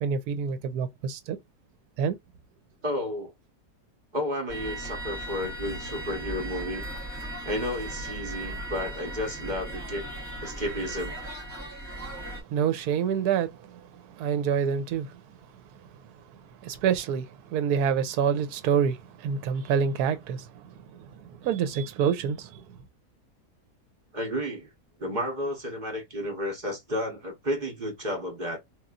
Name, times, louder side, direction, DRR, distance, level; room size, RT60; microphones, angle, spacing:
voice 1, 0.0-1.4 2.0-2.2 12.5-13.8 14.2-15.1 16.6-20.6 20.9-22.6, right 7 dB, 75° right, 1.1 m, -27 dB
voice 2, 2.8-3.3 4.1-6.8 7.4-10.0 10.4-11.2 24.1-24.7 25.0-28.6, left 1 dB, 35° right, 1.1 m, -32 dB
sound 1, 4.5-12.4, right 1 dB, 5° left, 1.5 m, -37 dB
3.0 x 2.7 x 2.4 m
omnidirectional pair, 1.7 m